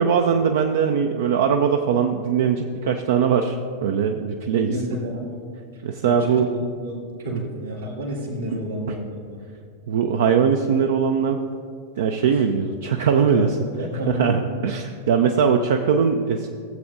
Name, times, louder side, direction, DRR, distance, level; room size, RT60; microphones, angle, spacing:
voice 1, 0.0-3.6 3.8-4.7 5.8-6.5 7.3-7.4 9.9-11.4 12.0-13.6 14.1-16.5, right 6 dB, 60° right, 5 dB, 0.4 m, -20 dB
voice 2, 4.7-5.4 5.7-9.4 12.3-12.4 13.1-13.5 13.8-14.4, equal, 85° right, -11 dB, 2.4 m, -30 dB
15.5 x 7.6 x 2.6 m, 2.3 s
figure-of-eight pair, 90°, 0 cm